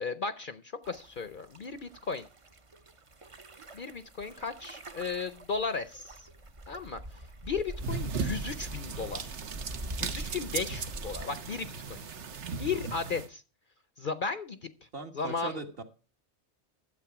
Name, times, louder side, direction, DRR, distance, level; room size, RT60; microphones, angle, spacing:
voice 1, 0.0-2.3 3.7-6.3 6.7-9.3 10.0-12.0 12.6-13.4 14.0-14.7 15.1-15.6, left 5 dB, 50° left, 12 dB, 0.8 m, -35 dB
sound 1, 0.8-11.2, right 1 dB, 30° right, 0.8 m, -44 dB
sound 2, 7.8-13.3, right 5 dB, 65° right, 1.2 m, -37 dB
voice 2, 14.9-15.8, right 3 dB, 50° right, 5 dB, 1.7 m, -39 dB
12.0 x 7.9 x 5.9 m, 0.35 s
omnidirectional pair, 1.3 m